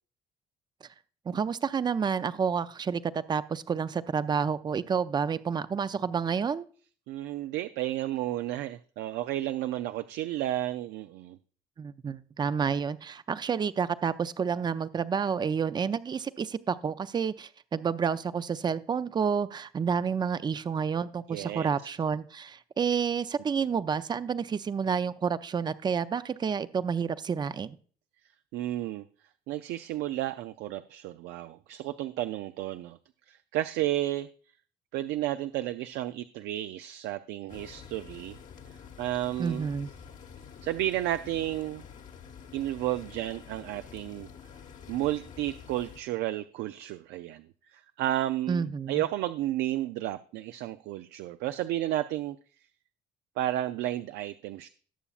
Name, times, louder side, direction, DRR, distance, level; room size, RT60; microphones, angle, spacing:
voice 1, 1.3-6.6 11.8-27.8 39.4-39.9 48.5-49.0, right 6 dB, 25° right, 14 dB, 0.5 m, -29 dB
voice 2, 7.1-11.4 21.3-21.7 28.5-29.0 29.5-33.0 33.3-34.3 34.9-38.4 38.7-39.7 40.6-41.8 42.5-44.3 44.9-52.4 53.4-54.7, right 14 dB, 85° right, 11 dB, 0.4 m, -32 dB
sound 1, 37.5-46.0, left 7 dB, 50° left, 1.2 m, -48 dB
18.5 x 7.0 x 2.4 m, 0.42 s
cardioid pair, 110°, 17 cm